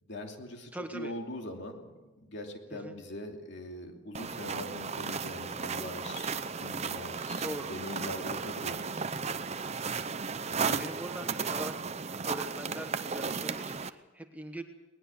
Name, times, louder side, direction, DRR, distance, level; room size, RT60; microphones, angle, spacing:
voice 1, 0.0-8.8 10.5-10.8, left 1 dB, 60° left, 3 dB, 3.0 m, -42 dB
voice 2, 0.7-1.1 2.7-3.0 7.4-7.7 10.8-14.6, right 1 dB, 5° right, 5 dB, 1.2 m, -42 dB
sound 1, 4.1-13.9, right 5 dB, 30° right, 0.7 m, -35 dB
20.0 x 19.5 x 7.3 m, 1.2 s
head